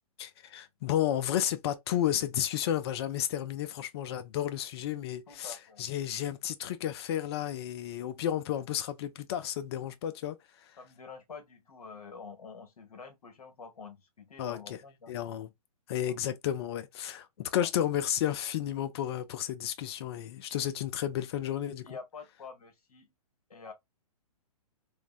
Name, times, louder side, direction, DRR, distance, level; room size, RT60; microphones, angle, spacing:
voice 1, 0.2-10.4 14.4-14.8 15.1-15.5 15.9-21.9, left 11 dB, 40° left, 0.5 m, -32 dB
voice 2, 5.3-5.9 10.8-15.1 16.1-16.2 17.4-17.7 21.8-23.1 23.5-23.7, left 5 dB, 75° left, 1.2 m, -47 dB
3.2 x 2.0 x 2.3 m
hypercardioid pair, 130°, 19 cm